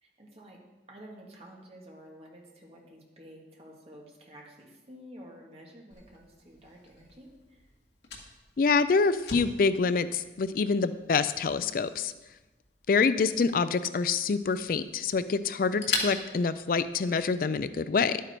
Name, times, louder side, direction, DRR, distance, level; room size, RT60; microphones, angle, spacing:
voice 1, 0.0-0.6 0.9-7.6, equal, 35° right, -1 dB, 2.1 m, -50 dB
Fire, 5.9-17.4, left 4 dB, 80° left, 1.9 m, -42 dB
voice 2, 8.6-12.1 12.9-18.2, left 4 dB, 50° left, 13 dB, 0.4 m, -26 dB
11.5 x 9.1 x 4.5 m, 1.1 s
head